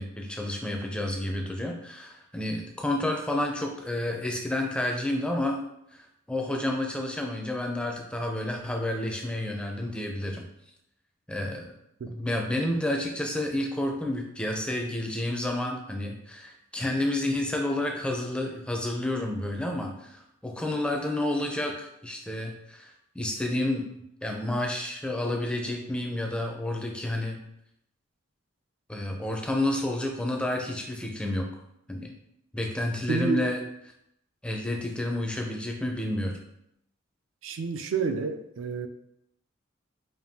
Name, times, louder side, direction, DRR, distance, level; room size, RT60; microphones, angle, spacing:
voice 1, 0.0-5.6 5.9-10.5 11.3-11.7 12.1-27.4 28.9-31.5 31.9-32.2 32.5-33.6 34.4-36.4, left 1 dB, 5° left, 1 dB, 0.4 m, -30 dB
voice 2, 33.1-33.5 37.4-38.9, right 4 dB, 65° right, 7 dB, 0.4 m, -29 dB
5.1 x 2.6 x 2.7 m, 0.77 s
head